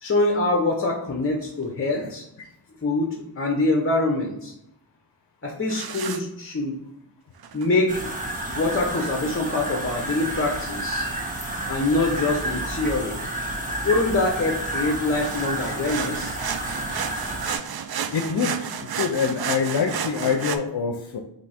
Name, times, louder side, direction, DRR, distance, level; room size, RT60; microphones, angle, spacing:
voice 1, 0.0-2.2 2.8-4.5 5.4-6.8 7.5-8.1 8.5-11.1 11.7-13.1 13.8-16.4, left 2 dB, 30° left, 1 dB, 0.7 m, -24 dB
sound 1, 1.3-1.4 5.7-6.2 7.4-7.7 11.5-11.6 11.9-12.0 13.4-13.5 13.7-13.8 14.1-20.6, right 7 dB, 60° right, 0.5 m, -32 dB
sound 2, 7.9-17.6, right 1 dB, 20° right, 1.2 m, -30 dB
voice 2, 18.1-21.2, left 6 dB, 65° left, 5 dB, 0.6 m, -25 dB
4.5 x 2.7 x 4.2 m, 0.82 s
wide cardioid pair, 65°, 43 cm